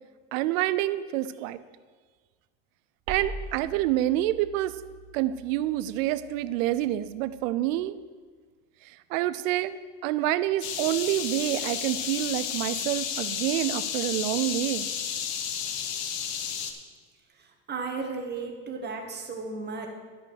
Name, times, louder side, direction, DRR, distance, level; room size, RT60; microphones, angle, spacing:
voice 1, 0.3-1.6 3.1-4.8 5.1-8.0 8.8-14.9, right 14 dB, 80° right, 15 dB, 0.6 m, -27 dB
sound 1, 3.1-7.9, right 4 dB, 50° right, 1.2 m, -43 dB
sound 2, 10.6-16.7, left 8 dB, 65° left, 1.2 m, -32 dB
voice 2, 17.4-19.9, right 4 dB, 25° right, 2 dB, 1.7 m, -35 dB
11.0 x 5.4 x 6.4 m, 1.5 s
supercardioid pair, 115°, 39 cm